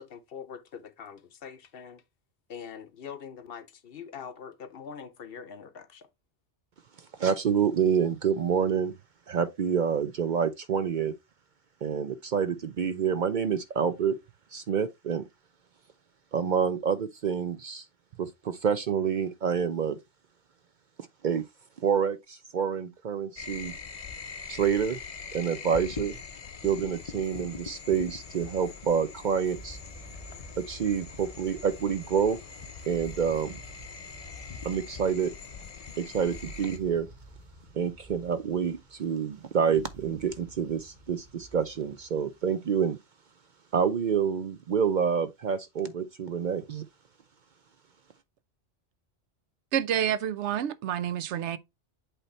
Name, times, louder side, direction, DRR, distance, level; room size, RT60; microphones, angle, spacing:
voice 1, 0.0-2.0 2.5-6.1, left 7 dB, 60° left, 0.9 m, -43 dB
voice 2, 7.2-8.9 9.3-11.1 11.8-14.2 14.5-15.2 16.3-17.8 18.2-20.0 21.2-21.4 21.8-23.7 24.5-25.0 25.3-26.1 26.6-29.8 30.6-32.4 32.9-33.6 34.6-35.3 36.0-37.1 37.7-43.0 43.7-46.8, right 7 dB, 55° right, 0.6 m, -27 dB
sound 1, 23.4-36.8, left 6 dB, 40° left, 0.6 m, -43 dB
sound 2, 28.2-42.5, right 1 dB, 40° right, 2.8 m, -50 dB
voice 3, 49.7-51.6, right 10 dB, 80° right, 0.9 m, -28 dB
8.0 x 3.0 x 4.2 m
omnidirectional pair, 1.2 m